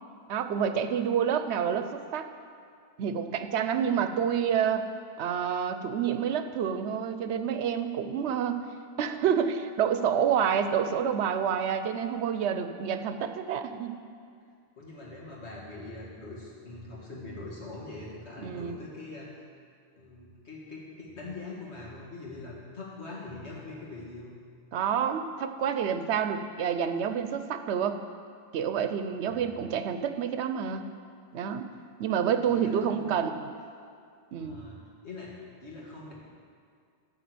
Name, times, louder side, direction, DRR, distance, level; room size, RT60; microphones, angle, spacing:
voice 1, 0.3-2.3 3.0-4.9 5.2-8.7 9.0-14.0 18.4-18.8 24.7-28.0 28.5-30.8 31.3-31.7 32.0-33.5 34.3-34.7, right 8 dB, 80° right, 9 dB, 0.9 m, -28 dB
voice 2, 14.8-19.4 20.0-24.3 29.2-29.6 32.4-33.2 34.3-34.8 35.0-36.1, left 2 dB, 80° left, -4 dB, 2.2 m, -43 dB
12.0 x 4.3 x 7.7 m, 2.2 s
omnidirectional pair, 1.1 m